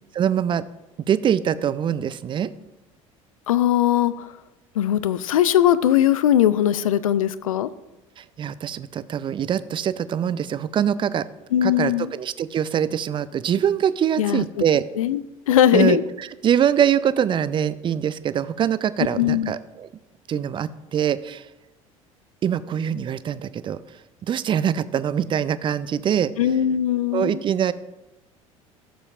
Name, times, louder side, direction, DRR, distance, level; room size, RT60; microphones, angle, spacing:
voice 1, 0.1-0.6 1.1-2.5 8.2-11.3 11.6-14.8 15.7-19.9 20.3-21.4 22.4-23.8 24.3-26.3 27.1-27.7, right 9 dB, 30° right, 16 dB, 0.4 m, -23 dB
voice 2, 3.5-4.3 4.8-7.7 11.5-12.1 14.2-14.6 15.0-16.0 19.1-19.5 26.4-27.4, left 11 dB, 75° left, 16 dB, 0.4 m, -20 dB
13.5 x 7.0 x 2.4 m, 1.0 s
figure-of-eight pair, 65°, 18 cm